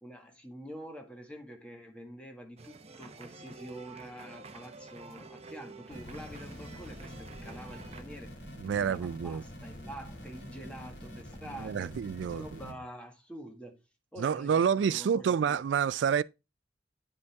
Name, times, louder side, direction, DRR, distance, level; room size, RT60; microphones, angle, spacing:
voice 1, 0.0-8.3 8.8-11.9 12.3-13.8 14.1-15.6, equal, 5° left, 1.7 m, -46 dB
sound 1, 2.6-8.0, right 3 dB, 35° right, 0.9 m, -49 dB
sound 2, 5.9-12.7, equal, 80° left, 2.6 m, -46 dB
voice 2, 8.6-9.4 11.6-12.4 14.2-16.2, right 7 dB, 75° right, 0.3 m, -28 dB
9.6 x 5.3 x 3.4 m
head